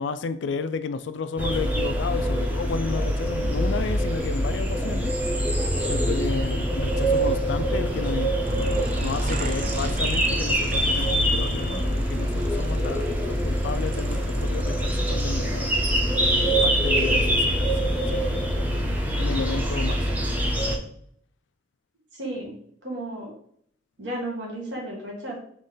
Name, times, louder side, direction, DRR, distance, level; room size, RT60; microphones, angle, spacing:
voice 1, 0.0-5.1 5.9-15.8 16.4-20.1, left 5 dB, 80° left, 11 dB, 0.4 m, -32 dB
sound 1, 1.4-20.8, equal, 10° right, 0.6 m, -24 dB
sound 2, 8.4-17.1, right 4 dB, 45° right, 0.4 m, -40 dB
voice 2, 22.1-22.5 22.8-23.3 24.0-25.3, right 1 dB, 75° right, -2 dB, 1.6 m, -33 dB
3.9 x 3.2 x 3.8 m, 0.63 s
head